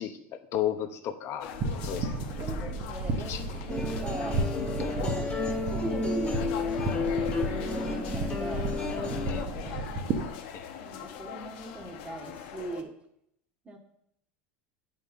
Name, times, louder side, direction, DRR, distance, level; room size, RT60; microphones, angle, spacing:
voice 1, 0.0-1.6 1.8-2.1 3.2-3.4 9.2-9.5 10.5-10.7, left 10 dB, 45° left, 9 dB, 0.9 m, -33 dB
sound 1, 1.4-12.8, left 9 dB, 70° left, 0.9 m, -41 dB
sound 2, 1.5-10.3, right 3 dB, 45° right, 1.2 m, -33 dB
voice 2, 2.4-8.7 9.0-9.8 10.8-12.9 13.6-13.8, right 3 dB, 20° right, 3 dB, 1.3 m, -41 dB
String eckoz, 3.7-9.4, left 4 dB, 20° left, 1.7 m, -32 dB
9.3 x 4.7 x 5.3 m, 0.75 s
supercardioid pair, 135°, 6 cm